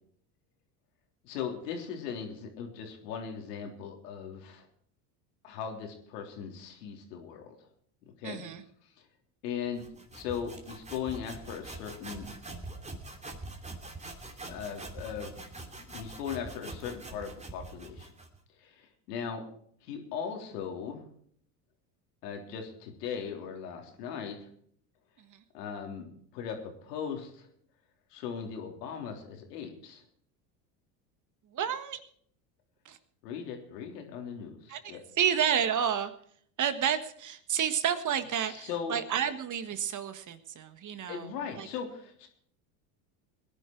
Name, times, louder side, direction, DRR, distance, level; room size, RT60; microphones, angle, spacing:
voice 1, 1.2-4.7 5.4-7.6 8.0-8.4 9.4-9.8 10.1-12.3 14.5-15.4 15.9-18.1 18.6-19.4 19.8-21.0 22.2-24.5 25.5-27.5 28.1-30.0 33.2-35.0 38.4-39.0 41.1-42.3, left 7 dB, 80° left, 3 dB, 3.6 m, -38 dB
voice 2, 8.2-8.6 25.2-25.4 31.5-32.0 32.8-33.0 34.7-36.1 36.6-41.7, right 8 dB, 40° right, 11 dB, 1.6 m, -30 dB
sound 1, 9.8-18.4, right 2 dB, 15° right, 2.8 m, -44 dB
19.5 x 10.5 x 4.6 m, 0.62 s
supercardioid pair, 90°, 47 cm